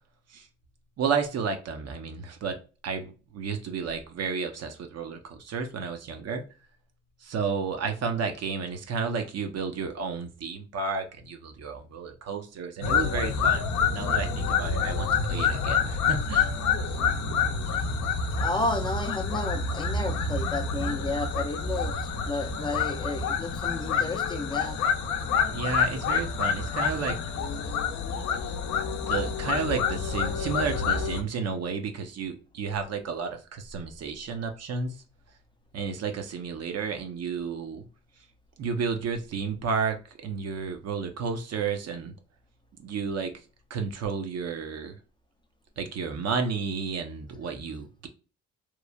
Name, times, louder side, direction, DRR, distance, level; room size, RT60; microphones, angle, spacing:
voice 1, 1.0-6.4 7.2-16.5 25.5-27.2 29.0-35.0 35.7-37.9 38.6-42.1 42.8-43.3 43.7-45.0 45.8-48.1, right 5 dB, 55° right, 0.6 m, -32 dB
sound 1, 12.8-31.2, left 5 dB, 70° left, 0.5 m, -27 dB
voice 2, 18.4-21.9 22.2-24.8, left 2 dB, 15° left, 0.4 m, -32 dB
3.0 x 2.1 x 2.3 m
cardioid pair, 90°, 30 cm